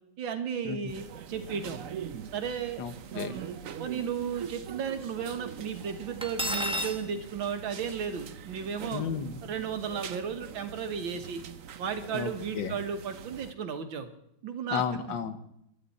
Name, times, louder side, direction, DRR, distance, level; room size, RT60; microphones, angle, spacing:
voice 1, 0.2-1.8 2.3-2.8 3.1-9.0 9.4-11.4 11.8-14.1 14.4-14.8, right 7 dB, 80° right, 7 dB, 2.1 m, -34 dB
sound 1, 0.9-13.5, right 8 dB, 55° right, 0.9 m, -43 dB
voice 2, 2.8-3.3 8.9-9.4 12.1-12.8 14.7-15.4, left 7 dB, 70° left, 11 dB, 1.7 m, -33 dB
Cutlery silverware, 6.2-7.0, equal, 10° right, 0.3 m, -30 dB
23.0 x 10.5 x 4.2 m, 0.76 s
omnidirectional pair, 2.1 m